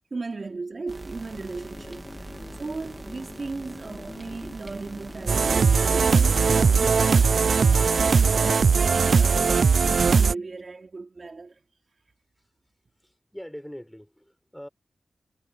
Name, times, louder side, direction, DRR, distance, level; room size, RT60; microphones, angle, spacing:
voice 1, 0.1-2.3 2.6-7.3 7.6-11.6, right 3 dB, 50° right, 3.3 m, -36 dB
sound 1, 0.9-8.4, right 2 dB, 30° right, 2.0 m, -43 dB
sound 2, 1.3-8.0, left 2 dB, 30° left, 3.2 m, -45 dB
sound 3, 5.3-10.3, right 5 dB, 70° right, 0.3 m, -19 dB
voice 2, 13.0-14.7, equal, 5° left, 4.4 m, -42 dB
cardioid pair, 55°, 0 cm